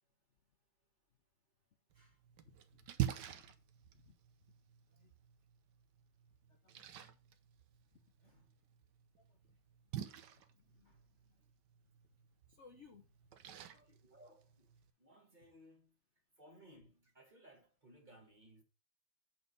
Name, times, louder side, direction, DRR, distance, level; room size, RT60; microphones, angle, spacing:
Splash splatter, 1.9-14.9, right 12 dB, 65° right, 1.4 m, -47 dB
voice 1, 3.0-3.4 4.0-4.1 4.9-5.1 6.5-6.8 9.3-9.4 9.9-10.2 10.5-10.9 12.6-13.0, left 5 dB, 45° left, 1.0 m, -62 dB
voice 2, 8.2-8.5 10.7-11.1 13.7-14.7 15.0-16.0 16.4-18.6, equal, 25° right, 1.8 m, -62 dB
8.3 x 4.2 x 5.4 m
omnidirectional pair, 2.1 m